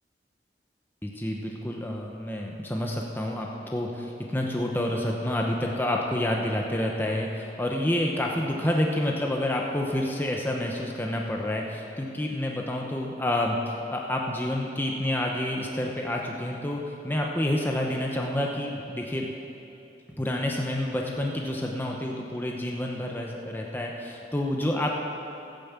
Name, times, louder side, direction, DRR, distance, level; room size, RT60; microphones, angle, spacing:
voice 1, 1.0-19.3 20.2-24.9, left 1 dB, 10° left, -1 dB, 0.9 m, -28 dB
12.5 x 9.2 x 7.3 m, 2.8 s
head